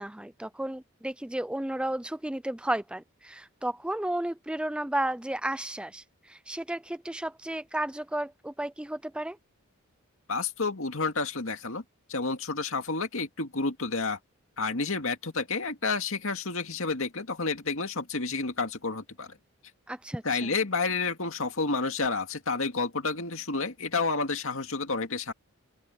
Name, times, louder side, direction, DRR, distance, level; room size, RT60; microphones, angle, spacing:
voice 1, 0.0-9.4 19.9-20.5, right 1 dB, 5° right, 0.3 m, -33 dB
voice 2, 10.3-11.8 12.1-14.2 14.6-19.4 20.2-25.3, left 4 dB, 70° left, 2.2 m, -30 dB
open air
head